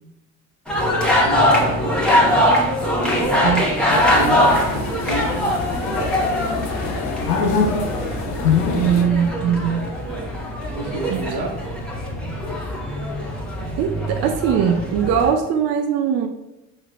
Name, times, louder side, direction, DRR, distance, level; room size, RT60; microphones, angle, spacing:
sound 1, 0.7-15.3, left 1 dB, ahead, 1.0 m, -22 dB
voice 1, 1.2-2.8 3.2-3.5 3.8-4.6 5.1-5.5 7.6-7.9 10.7-11.5, right 2 dB, 55° right, 1 dB, 1.1 m, -30 dB
sound 2, 3.9-9.0, left 4 dB, 80° left, 0.8 m, -24 dB
voice 2, 8.7-9.9 11.1-11.2 13.8-16.3, right 8 dB, 35° right, 4 dB, 0.4 m, -20 dB
5.5 x 3.1 x 2.4 m, 0.99 s
hypercardioid pair, 65°, 48 cm